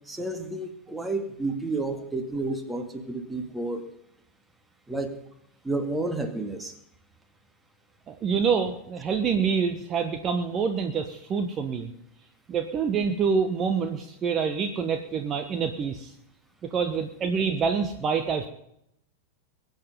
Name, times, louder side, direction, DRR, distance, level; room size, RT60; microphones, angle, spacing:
voice 1, 0.1-3.8 4.9-5.1 5.6-6.7, right 2 dB, 10° right, 7 dB, 2.0 m, -31 dB
voice 2, 8.1-11.9 12.5-16.1 16.6-18.5, right 6 dB, 25° right, 7 dB, 1.2 m, -26 dB
22.5 x 9.4 x 5.4 m, 0.76 s
figure-of-eight pair, 90°, 0 cm